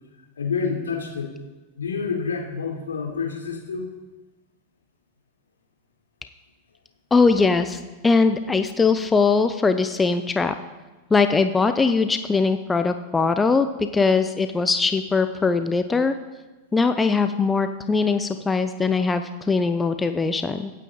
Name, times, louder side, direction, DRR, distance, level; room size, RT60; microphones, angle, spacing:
voice 1, 0.4-1.3 1.8-4.0, left 5 dB, 70° left, 0 dB, 3.4 m, -28 dB
voice 2, 7.1-10.6 11.1-16.1 16.7-20.7, left 4 dB, 15° left, 9 dB, 0.7 m, -21 dB
25.0 x 9.2 x 4.1 m, 1.2 s
figure-of-eight pair, 90°, 0 cm